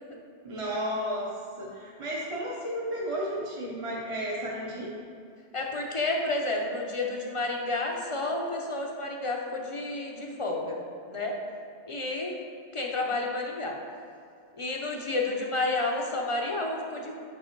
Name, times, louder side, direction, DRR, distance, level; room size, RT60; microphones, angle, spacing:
voice 1, 0.4-1.3 1.6-4.9, equal, 30° right, -4 dB, 0.8 m, -33 dB
voice 2, 5.5-11.4 11.9-12.4 12.7-13.7 14.6-17.1, left 2 dB, 35° left, 0 dB, 0.6 m, -30 dB
5.4 x 5.4 x 4.5 m, 2.5 s
omnidirectional pair, 1.1 m